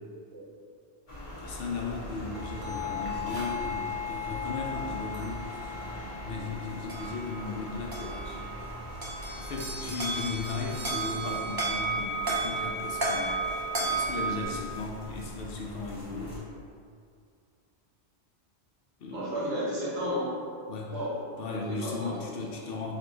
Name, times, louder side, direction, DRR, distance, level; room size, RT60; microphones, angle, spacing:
sound 1, 1.1-16.4, equal, 30° left, 1.0 m, -42 dB
voice 1, 1.4-5.8 6.2-8.4 9.4-13.4 13.8-16.4 19.0-19.3 20.7-21.0 21.4-23.0, left 4 dB, 65° left, -1 dB, 0.7 m, -36 dB
sound 2, 2.3-14.4, right 1 dB, 40° right, 0.3 m, -34 dB
voice 2, 19.1-20.3 20.9-21.2 21.5-22.2, equal, 85° right, -6 dB, 1.3 m, -32 dB
3.9 x 3.0 x 3.2 m, 2.3 s
omnidirectional pair, 1.1 m